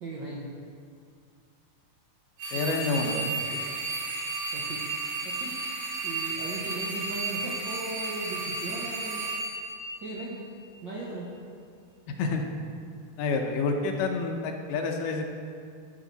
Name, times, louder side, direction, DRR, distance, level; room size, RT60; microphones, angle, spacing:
voice 1, 0.0-0.5 2.5-3.7 4.5-4.9 5.2-5.5 6.0-9.2 10.0-10.4 10.8-11.3, right 1 dB, 85° right, -4 dB, 1.0 m, -37 dB
sound 1, 2.4-10.6, right 3 dB, 50° right, 2.5 m, -33 dB
voice 2, 2.5-3.2 12.2-12.4 13.2-15.2, left 4 dB, 85° left, 3 dB, 2.5 m, -28 dB
13.5 x 6.6 x 4.0 m, 2.2 s
omnidirectional pair, 3.7 m